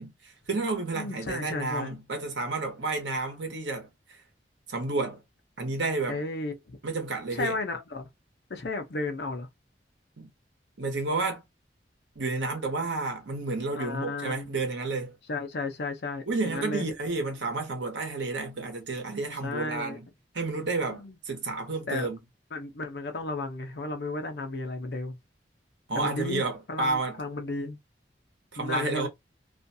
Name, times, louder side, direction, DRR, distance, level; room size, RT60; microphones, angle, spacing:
voice 1, 0.0-4.2 4.7-5.2 5.6-6.2 6.8-7.6 10.2-10.3 10.8-11.4 12.2-15.2 16.3-20.1 20.3-22.2 25.9-27.2 28.5-29.1, right 3 dB, 85° right, 0.9 m, -31 dB
voice 2, 0.9-1.9 6.1-6.8 7.3-8.1 8.5-9.5 13.8-14.5 15.3-16.9 19.4-20.0 20.9-21.2 21.9-22.1 22.5-25.2 25.9-27.8 28.6-29.1, left 3 dB, 70° left, 0.6 m, -34 dB
2.5 x 2.3 x 2.6 m
head